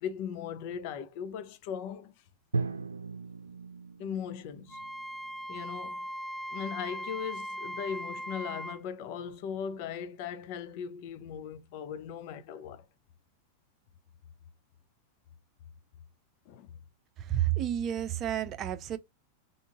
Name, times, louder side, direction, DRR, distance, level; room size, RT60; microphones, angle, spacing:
voice 1, 0.0-2.1 4.0-4.8 5.5-6.0 6.5-12.8 16.5-16.7, left 8 dB, 45° left, 0.6 m, -38 dB
Drum, 2.5-6.5, right 4 dB, 75° right, 0.6 m, -38 dB
Wind instrument woodwind instrument, 4.7-8.8, equal, ahead, 0.3 m, -39 dB
voice 2, 17.2-19.0, right 11 dB, 30° right, 0.7 m, -30 dB
3.8 x 3.7 x 3.7 m
figure-of-eight pair, 90°, 0 cm